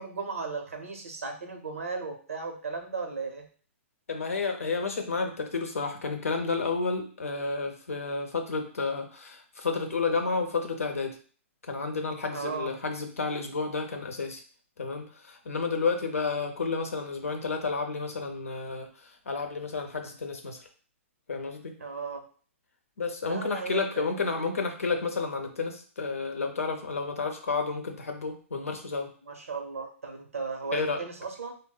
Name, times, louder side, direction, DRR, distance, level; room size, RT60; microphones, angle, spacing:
voice 1, 0.0-3.5 12.3-12.7 21.8-22.2 23.2-24.1 29.3-31.5, right 4 dB, 90° right, 4 dB, 0.7 m, -36 dB
voice 2, 4.1-11.2 11.6-14.4 14.8-20.7 21.3-21.8 23.0-29.1 30.7-31.0, left 4 dB, 90° left, 5 dB, 0.7 m, -31 dB
3.9 x 2.1 x 2.2 m, 0.42 s
hypercardioid pair, 130°, 7 cm